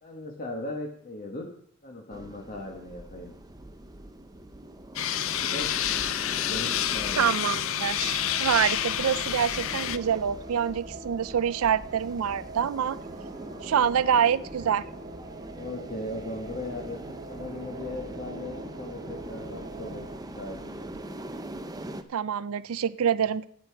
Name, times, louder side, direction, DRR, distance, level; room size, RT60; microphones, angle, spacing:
voice 1, 0.0-1.5 1.8-3.3 5.5-5.7 6.3-7.3 15.5-17.0 17.3-20.1 20.3-21.2, left 2 dB, 40° left, -1 dB, 1.4 m, -38 dB
sound 1, 2.1-22.0, right 1 dB, 20° right, 0.6 m, -42 dB
sound 2, 5.0-10.0, left 11 dB, 65° left, 0.6 m, -28 dB
voice 2, 7.2-13.0 13.6-14.8 22.1-23.5, right 8 dB, 75° right, 17 dB, 0.4 m, -26 dB
sound 3, 7.9-20.2, right 2 dB, 40° right, 1.4 m, -43 dB
12.0 x 8.6 x 4.6 m, 0.62 s
head